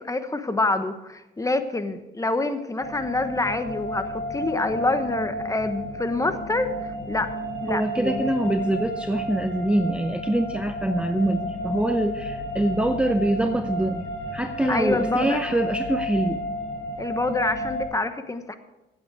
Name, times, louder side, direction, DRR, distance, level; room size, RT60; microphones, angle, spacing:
voice 1, 0.0-7.3 7.6-8.3 8.6-8.7 14.7-15.4 17.0-18.5, left 2 dB, 15° left, 9 dB, 1.1 m, -26 dB
sound 1, 2.8-17.8, equal, 60° left, 5.3 m, -32 dB
voice 2, 7.7-16.4, right 1 dB, 5° right, 7 dB, 0.6 m, -24 dB
15.5 x 8.7 x 4.7 m, 1.0 s
cardioid pair, 90°, 20 cm